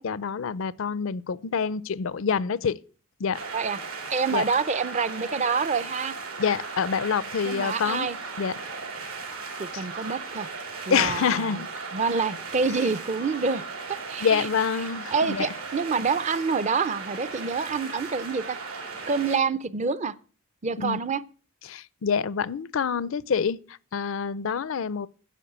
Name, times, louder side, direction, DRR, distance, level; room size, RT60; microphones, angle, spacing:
voice 1, 0.0-2.8 3.2-3.4 4.3-4.4 6.4-8.1 8.4-8.5 9.7-9.8 10.9-11.7 14.2-15.5 20.8-21.0 21.7-23.6 23.9-25.1, left 6 dB, 65° left, 0.4 m, -26 dB
sound 1, 3.3-19.4, right 4 dB, 80° right, 3.5 m, -37 dB
voice 2, 4.1-6.2 7.4-8.2 9.6-10.5 10.9-11.6 11.9-13.6 13.9-14.5 15.1-18.6 19.1-20.1 20.6-21.2, right 5 dB, 30° right, 0.5 m, -27 dB
10.0 x 6.4 x 8.7 m
head